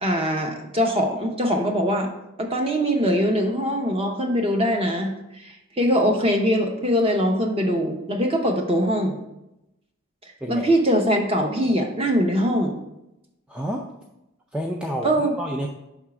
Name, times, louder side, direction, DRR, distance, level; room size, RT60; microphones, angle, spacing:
voice 1, 0.0-2.1 2.4-9.2 10.2-12.8 15.0-15.3, equal, 25° right, 3 dB, 0.8 m, -22 dB
voice 2, 13.5-13.9 14.5-15.7, equal, 5° right, -1 dB, 0.3 m, -29 dB
5.6 x 3.6 x 5.9 m, 0.89 s
head